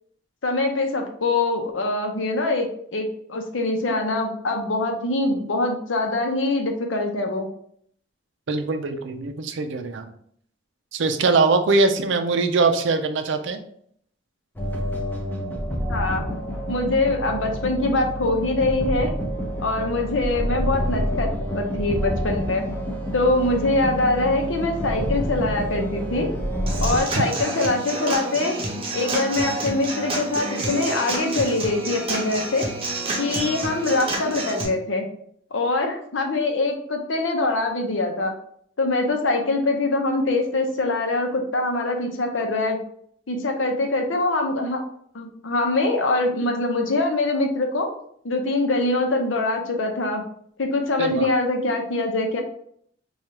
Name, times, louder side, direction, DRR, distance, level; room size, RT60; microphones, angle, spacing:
voice 1, 0.4-7.5 15.8-16.2 16.7-19.1 19.6-22.6 23.1-26.3 26.8-28.6 28.9-32.7 33.2-35.0 35.5-38.3 38.8-42.8 43.3-44.8 45.1-47.9 48.2-50.2 50.6-52.4, left 2 dB, 75° left, 3 dB, 0.7 m, -23 dB
voice 2, 8.5-10.1 10.9-13.6 27.1-27.3 51.0-51.3, right 3 dB, 70° right, 7 dB, 0.5 m, -22 dB
sound 1, 14.6-27.0, equal, 10° left, 0.7 m, -28 dB
Human voice / Acoustic guitar / Drum, 26.7-34.6, right 2 dB, 30° right, 0.7 m, -29 dB
4.7 x 2.4 x 2.9 m, 0.65 s
head